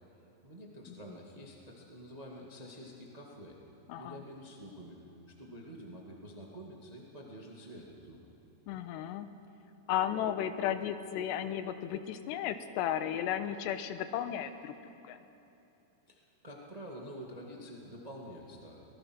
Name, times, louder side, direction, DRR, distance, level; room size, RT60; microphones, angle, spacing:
voice 1, 0.4-3.6 3.9-5.0 5.4-8.2 16.1-18.8, equal, 65° right, -1 dB, 0.4 m, -48 dB
voice 2, 8.7-9.3 9.9-14.7 15.0-15.2, left 10 dB, 85° left, 10 dB, 3.0 m, -34 dB
25.0 x 19.5 x 6.2 m, 2.9 s
omnidirectional pair, 4.9 m